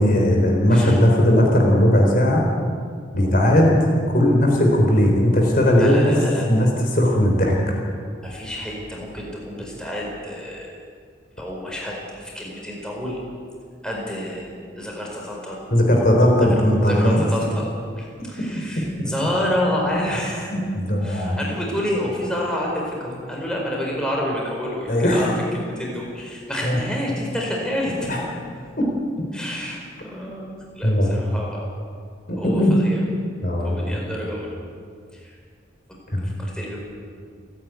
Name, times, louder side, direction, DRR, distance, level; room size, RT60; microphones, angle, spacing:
voice 1, 0.0-2.5 3.1-3.8 4.1-6.1 6.5-7.8 15.7-17.2 20.5-21.4 24.9-25.2 26.6-26.8 28.1-28.2 28.8-28.9 30.8-31.2 32.3-32.7 33.4-34.0 36.1-36.3, equal, 50° left, 0 dB, 4.0 m, -18 dB
voice 2, 5.8-6.5 8.2-10.8 11.4-13.2 13.8-15.6 16.6-17.7 18.0-20.5 21.0-28.2 29.3-31.8 32.4-33.0 33.6-34.5 35.1-35.3 36.2-36.8, left 1 dB, 5° left, -2 dB, 4.8 m, -29 dB
30.0 x 10.0 x 9.4 m, 2.1 s
head